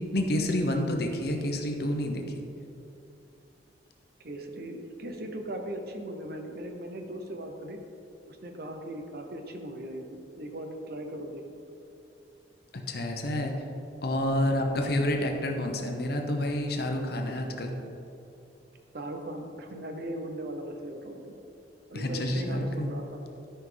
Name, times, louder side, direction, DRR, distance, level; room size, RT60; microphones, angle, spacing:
voice 1, 0.0-2.4 12.7-13.5 14.0-17.7 21.9-22.9, left 1 dB, 60° left, 3 dB, 1.0 m, -29 dB
voice 2, 4.2-7.8 8.3-11.6 18.9-21.3 21.9-23.2, right 1 dB, 60° right, 4 dB, 0.9 m, -38 dB
12.5 x 5.5 x 3.9 m, 2.8 s
head